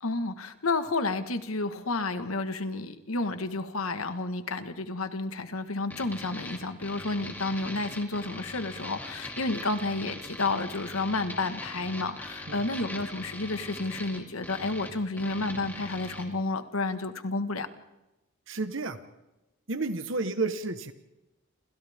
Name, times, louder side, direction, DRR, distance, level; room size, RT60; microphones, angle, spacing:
voice 1, 0.0-17.7, left 3 dB, 85° left, 9 dB, 1.7 m, -31 dB
sound 1, 5.9-16.3, left 1 dB, 10° left, 2.6 m, -41 dB
voice 2, 18.5-19.0 19.7-20.9, right 3 dB, 65° right, 9 dB, 1.3 m, -31 dB
29.0 x 27.0 x 3.7 m, 0.98 s
head